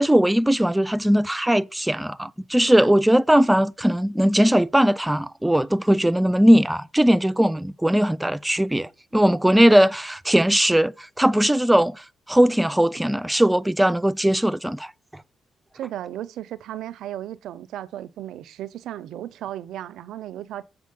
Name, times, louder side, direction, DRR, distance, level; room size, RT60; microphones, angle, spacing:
voice 1, 0.0-14.9, equal, 10° right, 0.5 m, -19 dB
voice 2, 15.7-20.6, right 12 dB, 75° right, 0.5 m, -35 dB
7.6 x 4.8 x 5.4 m
supercardioid pair, 65°, 0 cm